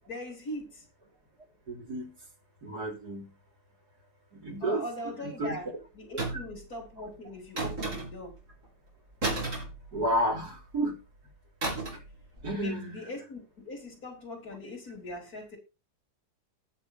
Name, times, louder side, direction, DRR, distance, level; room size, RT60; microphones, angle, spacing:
voice 1, 0.1-0.8 4.6-5.7 5.9-8.4 12.6-15.6, left 1 dB, 55° left, 0 dB, 4.1 m, -40 dB
voice 2, 1.7-2.1 2.6-3.3 4.3-4.8 5.2-5.6 9.9-11.0 12.4-13.0, right 1 dB, 60° right, 0 dB, 3.8 m, -31 dB
sound 1, 6.2-6.6 7.6-8.3 9.2-10.4 11.6-12.1 12.4-12.6, right 2 dB, 45° right, 4.8 m, -33 dB
19.5 x 6.7 x 2.7 m, 0.28 s
omnidirectional pair, 1.9 m